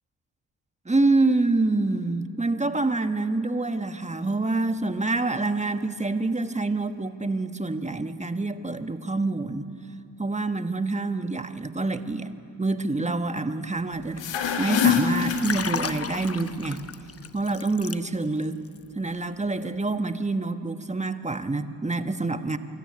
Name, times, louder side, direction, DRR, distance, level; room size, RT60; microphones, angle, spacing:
voice 1, 0.8-9.7 10.2-12.3 12.6-14.2 14.6-16.8 17.3-18.6 18.9-22.6, right 3 dB, 15° right, 9 dB, 1.3 m, -26 dB
sound 1, 14.0-16.2, left 7 dB, 80° left, 1.6 m, -25 dB
Liquid, 15.1-18.5 18.8-19.0, left 6 dB, 35° left, 0.9 m, -34 dB
25.5 x 14.0 x 9.7 m, 2.8 s
supercardioid pair, 45°, 43 cm